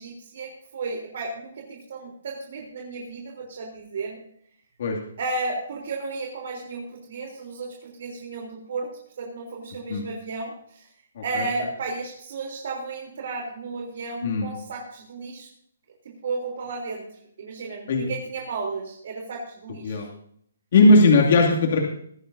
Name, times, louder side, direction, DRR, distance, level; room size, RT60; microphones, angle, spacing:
voice 1, 0.0-4.2 5.2-8.9 9.2-10.9 11.2-15.5 16.1-17.0 17.4-20.1, right 3 dB, 55° right, -1 dB, 3.6 m, -33 dB
voice 2, 11.2-11.5 14.2-14.5 17.9-18.1 19.8-20.1 20.7-21.8, left 2 dB, 50° left, 0 dB, 2.6 m, -18 dB
21.5 x 11.0 x 2.8 m, 0.66 s
hypercardioid pair, 160°, 0 cm